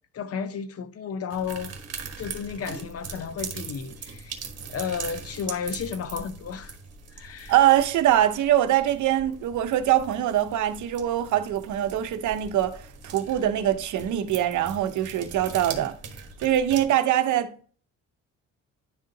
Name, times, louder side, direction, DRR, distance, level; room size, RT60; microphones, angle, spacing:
voice 1, 0.1-1.7 2.2-4.4 4.7-6.8 7.1-7.5, left 6 dB, 50° left, 0.7 m, -33 dB
sound 1, 1.3-16.8, right 5 dB, 55° right, 1.2 m, -41 dB
voice 2, 7.5-16.0 16.4-17.7, right 12 dB, 75° right, 0.8 m, -23 dB
10.5 x 3.7 x 2.7 m
cardioid pair, 90°, 30 cm